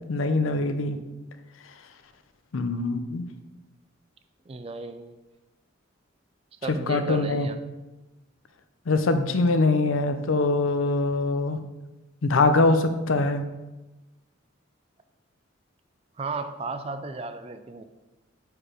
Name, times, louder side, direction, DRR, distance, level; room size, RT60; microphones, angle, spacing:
voice 1, 0.1-1.0 2.5-3.3 6.9-7.5 8.9-11.6 12.2-13.4, left 3 dB, 90° left, 9 dB, 0.6 m, -23 dB
voice 2, 4.5-5.2 6.6-7.6 16.2-17.8, right 3 dB, 30° right, 9 dB, 0.4 m, -34 dB
4.8 x 4.4 x 4.9 m, 1.1 s
head